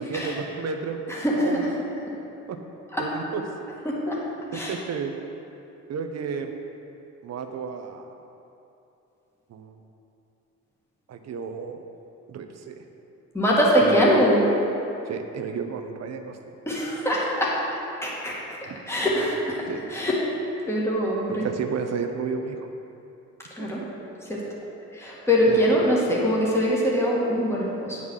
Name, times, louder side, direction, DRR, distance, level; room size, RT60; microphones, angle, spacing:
voice 1, 0.0-1.0 1.4-1.6 2.5-2.6 3.0-3.4 4.5-5.1 5.9-6.5 7.2-8.1 9.5-9.8 11.1-11.8 12.3-12.8 13.8-14.0 15.1-16.4 18.7-18.8 19.7-19.8 21.3-22.6 23.6-23.7 25.5-25.6, right 6 dB, 60° right, 5 dB, 0.9 m, -32 dB
voice 2, 1.1-1.7 2.9-3.0 3.8-4.2 4.5-4.7 13.3-14.4 16.7-17.5 18.0-18.3 18.9-19.6 19.9-20.1 20.7-21.5 23.6-23.8 24.3-24.4 24.9-28.0, equal, 10° left, -5 dB, 2.2 m, -23 dB
9.4 x 5.6 x 6.5 m, 2.8 s
cardioid pair, 90°, 30 cm